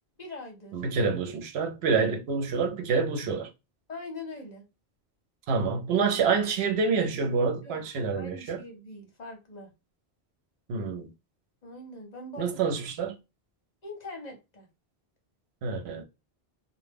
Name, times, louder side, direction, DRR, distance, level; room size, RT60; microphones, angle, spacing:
voice 1, 0.2-0.8 3.9-4.6 7.6-7.8 8.1-9.7 11.6-12.7 13.8-14.7, left 2 dB, 45° left, 0.8 m, -42 dB
voice 2, 0.7-3.5 5.5-8.6 10.7-11.1 12.4-13.2 15.6-16.0, right 5 dB, 80° right, 0.8 m, -27 dB
2.1 x 2.1 x 3.3 m
omnidirectional pair, 1.1 m